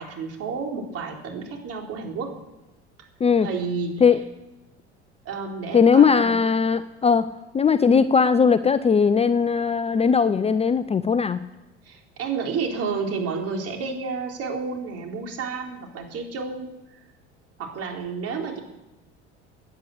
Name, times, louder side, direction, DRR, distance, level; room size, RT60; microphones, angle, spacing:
voice 1, 0.0-2.3 3.0-3.1 3.4-4.0 5.2-6.8 11.8-16.7 17.6-18.6, right 5 dB, 45° right, 1 dB, 4.2 m, -31 dB
voice 2, 5.7-7.3 7.5-11.4, left 6 dB, 20° left, 14 dB, 0.6 m, -19 dB
16.0 x 10.0 x 8.2 m, 1.0 s
figure-of-eight pair, 65°, 34 cm